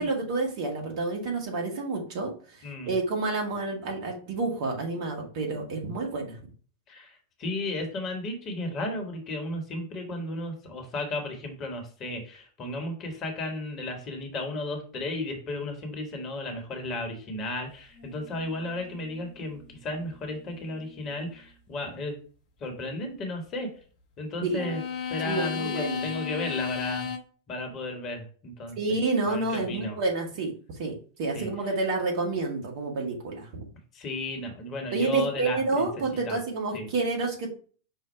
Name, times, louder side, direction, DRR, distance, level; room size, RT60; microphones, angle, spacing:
voice 1, 0.0-2.3 2.8-6.3 24.4-24.7 25.2-26.0 28.8-30.5 30.8-33.7 34.9-37.5, right 3 dB, 50° right, 0 dB, 1.3 m, -29 dB
voice 2, 2.6-2.9 6.9-22.2 22.6-23.7 24.2-24.8 25.1-27.1 27.5-28.8 29.3-30.0 31.3-31.5 33.9-35.9 36.2-36.4 36.7-36.9, left 2 dB, 30° left, 3 dB, 1.2 m, -34 dB
sound 1, 17.9-21.4 24.6-27.2, left 7 dB, 50° left, 0.9 m, -36 dB
5.5 x 2.2 x 4.3 m, 0.41 s
figure-of-eight pair, 90°, 0 cm